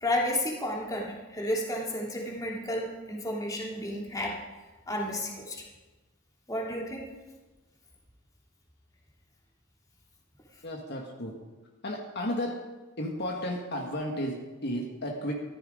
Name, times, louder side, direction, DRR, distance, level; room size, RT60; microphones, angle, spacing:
voice 1, 0.0-4.3 4.9-5.6 6.5-7.0, left 1 dB, 15° left, -2 dB, 2.7 m, -32 dB
voice 2, 10.6-11.3 11.8-12.6 13.0-15.3, equal, 50° left, 0 dB, 1.7 m, -33 dB
14.0 x 14.0 x 5.1 m, 1.2 s
head